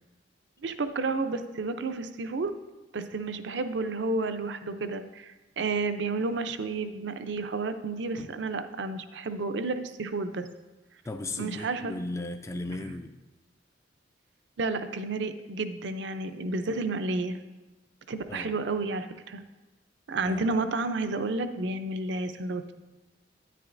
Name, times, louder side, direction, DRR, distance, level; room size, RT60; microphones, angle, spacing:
voice 1, 0.6-2.5 2.9-10.5 11.4-12.0 14.6-17.4 18.1-19.4 20.1-22.7, right 3 dB, 65° right, 9 dB, 0.5 m, -31 dB
voice 2, 11.1-13.2 18.3-18.6 20.1-20.6, left 2 dB, 15° left, 6 dB, 0.3 m, -36 dB
10.0 x 9.5 x 2.6 m, 1.2 s
head